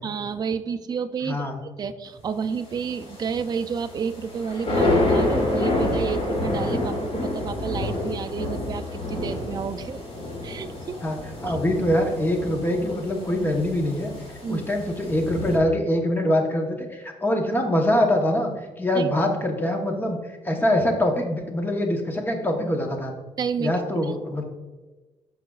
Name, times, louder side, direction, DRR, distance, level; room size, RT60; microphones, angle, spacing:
voice 1, 0.0-10.0 10.4-11.0 14.4-14.6 18.9-19.1 23.4-24.2, right 6 dB, 30° right, 9 dB, 0.3 m, -30 dB
voice 2, 1.2-1.6 11.0-11.2 11.4-14.1 14.5-23.1 23.6-24.4, left 1 dB, 15° left, 3 dB, 0.9 m, -24 dB
sound 1, 2.5-15.6, left 2 dB, 50° left, 2.2 m, -28 dB
12.5 x 4.8 x 2.3 m, 1.2 s
cardioid pair, 155°, 13 cm